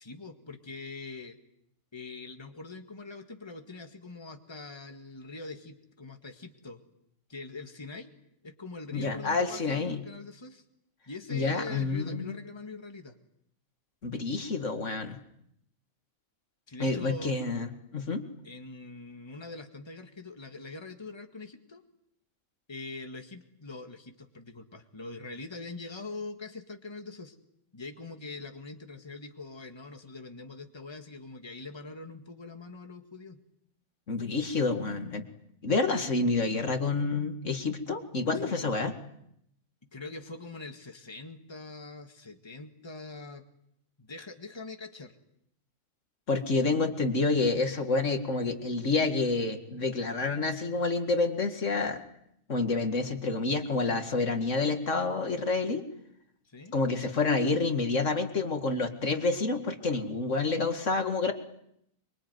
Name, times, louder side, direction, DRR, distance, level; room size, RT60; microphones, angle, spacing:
voice 1, 0.0-1.4 1.9-6.8 7.3-8.1 8.4-10.6 11.1-13.2 16.7-17.4 18.4-21.8 22.7-27.4 27.7-33.4 38.3-38.8 39.8-43.4 44.0-45.2 56.4-56.8, left 3 dB, 20° left, 5 dB, 1.9 m, -43 dB
voice 2, 8.9-10.0 11.3-12.4 14.0-15.2 16.8-18.2 34.1-35.3 35.6-38.9 46.3-52.0 52.5-55.8 56.7-61.3, left 3 dB, 70° left, 6 dB, 2.4 m, -28 dB
25.0 x 24.0 x 9.5 m, 0.75 s
omnidirectional pair, 1.3 m